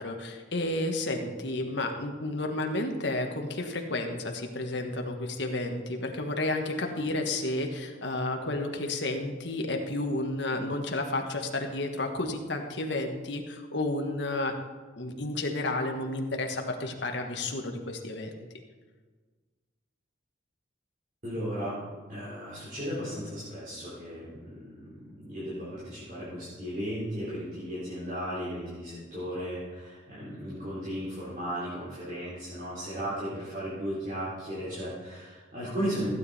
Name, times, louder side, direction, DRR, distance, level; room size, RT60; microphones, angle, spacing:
voice 1, 0.0-14.6 15.0-18.3, left 2 dB, 60° left, 3 dB, 1.4 m, -31 dB
voice 2, 21.2-21.8 22.1-36.1, equal, 40° right, -10 dB, 3.9 m, -35 dB
15.5 x 9.2 x 4.2 m, 1.4 s
head